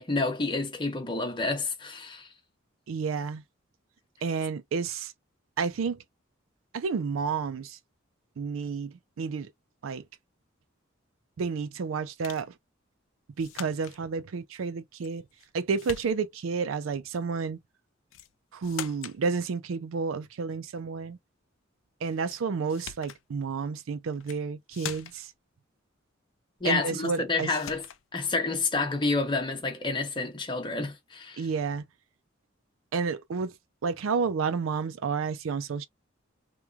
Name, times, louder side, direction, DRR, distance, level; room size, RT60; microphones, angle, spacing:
voice 1, 0.0-2.3 26.6-27.8 28.1-31.4, left 3 dB, 25° left, 0.8 m, -29 dB
voice 2, 2.9-3.4 4.2-5.1 5.6-6.0 6.7-7.8 8.4-9.5 9.8-10.0 11.4-12.5 13.4-15.2 15.5-17.6 18.5-21.2 22.0-25.3 26.6-27.6 31.4-31.8 32.9-33.5 33.8-35.9, right 5 dB, 85° right, 0.4 m, -30 dB
sound 1, 12.2-12.5 13.4-14.0 15.0-15.5 15.8-16.5 18.1-18.3 18.6-19.2 22.3-22.4 22.7-23.2 24.1-24.4 24.7-25.3 27.0-27.2 27.5-28.0, left 10 dB, 85° left, 0.4 m, -42 dB
3.0 x 2.2 x 2.3 m
head